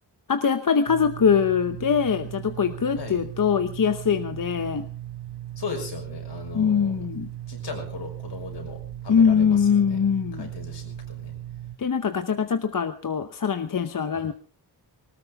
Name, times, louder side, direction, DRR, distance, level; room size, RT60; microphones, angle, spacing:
voice 1, 0.3-4.9 6.5-7.3 9.1-10.5 11.8-14.3, left 6 dB, 50° left, 9 dB, 0.9 m, -22 dB
sound 1, 0.9-11.8, right 13 dB, 65° right, 1.5 m, -38 dB
voice 2, 5.6-6.9 7.5-10.0 10.3-11.3 14.1-14.3, left 4 dB, 70° left, 3 dB, 5.9 m, -37 dB
20.0 x 19.0 x 3.6 m, 0.37 s
wide cardioid pair, 170°, 43 cm